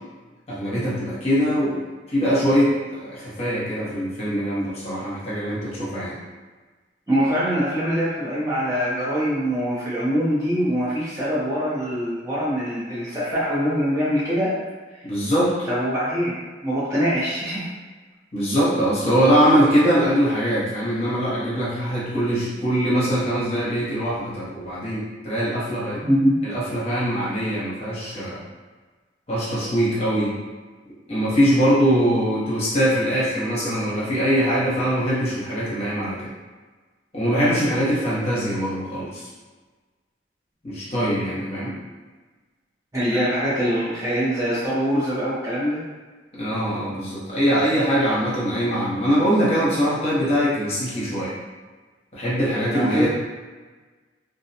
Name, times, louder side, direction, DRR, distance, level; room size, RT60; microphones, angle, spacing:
voice 1, 0.5-1.8 2.1-6.2 15.0-15.7 18.3-26.0 26.4-28.4 29.3-30.3 31.1-36.3 37.1-39.2 40.6-41.7 46.4-51.3 52.1-53.1, equal, 35° left, -8 dB, 0.7 m, -22 dB
voice 2, 7.1-14.5 15.0-15.1 15.7-16.3 16.6-17.7 26.0-26.3 42.9-45.8 52.7-53.1, equal, 15° right, -9 dB, 0.5 m, -23 dB
2.4 x 2.1 x 2.7 m, 1.4 s
head